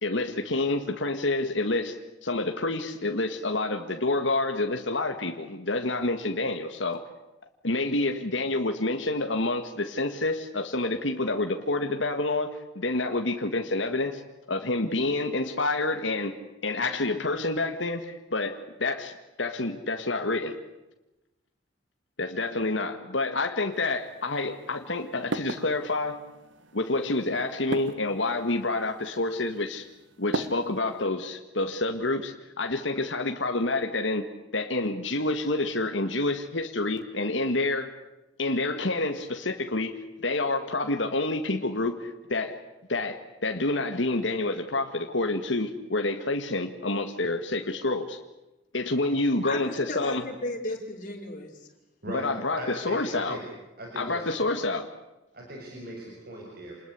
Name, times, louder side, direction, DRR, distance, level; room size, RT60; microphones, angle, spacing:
voice 1, 0.0-2.0 2.2-7.0 7.6-14.2 14.5-16.4 16.6-19.1 19.4-20.6 22.2-26.2 26.7-29.9 30.2-34.2 34.5-37.9 38.4-39.9 40.2-42.6 42.9-48.2 48.7-50.2 52.1-53.4 54.0-54.8, left 2 dB, 75° left, 5 dB, 1.9 m, -28 dB
sound 1, 23.7-31.1, right 2 dB, 75° right, 1.7 m, -39 dB
voice 2, 49.4-51.5, left 2 dB, 40° left, 0 dB, 5.5 m, -35 dB
voice 3, 52.6-53.4 53.8-54.5 55.3-56.7, right 1 dB, 50° right, -1 dB, 6.5 m, -39 dB
28.0 x 20.5 x 8.4 m, 1.0 s
head